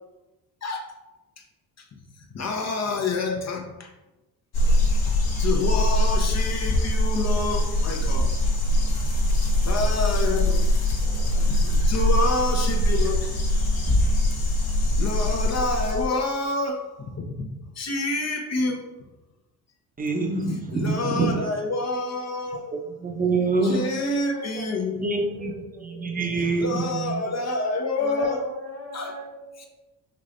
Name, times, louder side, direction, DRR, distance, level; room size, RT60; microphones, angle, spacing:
voice 1, 0.6-1.1 2.3-3.9 4.7-8.3 9.6-10.6 11.5-13.2 15.0-17.5 17.8-18.8 20.7-22.7 23.6-25.0 26.6-28.4 28.9-29.1, left 2 dB, 40° left, 3 dB, 0.9 m, -28 dB
sound 1, 4.5-16.1, left 1 dB, 60° left, 1.2 m, -22 dB
voice 2, 20.0-21.4 22.7-23.9 24.9-27.3, right 3 dB, 20° right, 2 dB, 0.9 m, -26 dB
voice 3, 23.7-24.7 25.2-26.8 28.0-29.7, equal, 90° right, -3 dB, 1.3 m, -39 dB
5.5 x 3.2 x 2.6 m, 1.0 s
hypercardioid pair, 55°, 42 cm